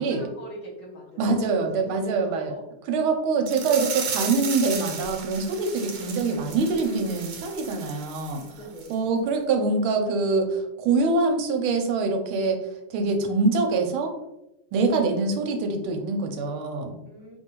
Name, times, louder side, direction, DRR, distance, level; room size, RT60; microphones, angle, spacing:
voice 1, 0.0-2.7 8.5-9.1 17.0-17.4, equal, 55° left, -4 dB, 1.5 m, -43 dB
voice 2, 1.2-2.5 2.9-8.4 8.9-14.2 14.7-17.0, right 3 dB, 85° right, 4 dB, 1.5 m, -24 dB
sound 1, 3.5-8.5 8.8-8.9 9.3-9.4, right 6 dB, 70° right, 1.4 m, -34 dB
5.0 x 2.7 x 2.9 m, 0.90 s
omnidirectional pair, 2.3 m